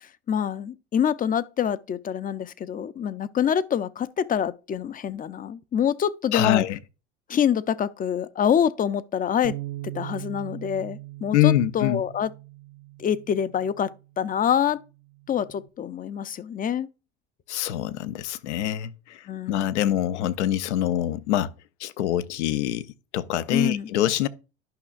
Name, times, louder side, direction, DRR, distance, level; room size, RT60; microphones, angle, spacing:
voice 1, 0.0-6.6 7.3-9.6 9.8-12.3 13.0-14.8 15.3-16.9 19.3-19.8 23.5-23.9, left 8 dB, 25° left, 0.4 m, -26 dB
voice 2, 6.3-6.8 11.3-12.0 17.5-21.5 21.8-22.9 23.1-24.3, left 12 dB, 85° left, 0.5 m, -25 dB
Bass guitar, 9.4-15.7, right 18 dB, 65° right, 0.6 m, -41 dB
11.5 x 5.6 x 2.4 m
hypercardioid pair, 75°, 34 cm